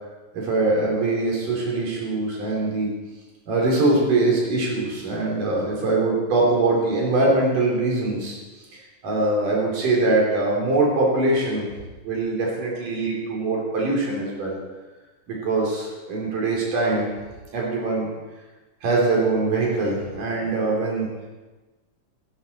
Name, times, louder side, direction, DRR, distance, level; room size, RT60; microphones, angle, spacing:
voice 1, 0.3-2.9 3.5-8.3 9.0-11.7 12.0-14.6 15.3-17.1 17.5-18.1 18.8-21.1, right 2 dB, 85° right, -3 dB, 5.3 m, -22 dB
19.5 x 11.0 x 4.5 m, 1.2 s
omnidirectional pair, 3.6 m